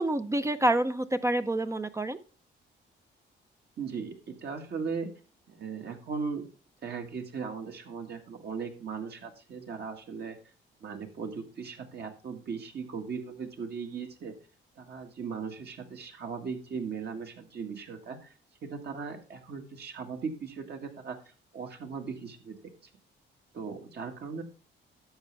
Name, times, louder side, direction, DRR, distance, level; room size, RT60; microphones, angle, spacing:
voice 1, 0.0-2.2, right 1 dB, 15° right, 10 dB, 0.6 m, -27 dB
voice 2, 3.8-5.1 5.5-6.5 6.8-10.4 10.8-14.4 14.8-18.3 18.6-22.6 22.8-22.9 23.5-24.4, right 5 dB, 55° right, 3 dB, 1.8 m, -38 dB
11.0 x 7.1 x 3.4 m, 0.34 s
cardioid pair, 90°, 20 cm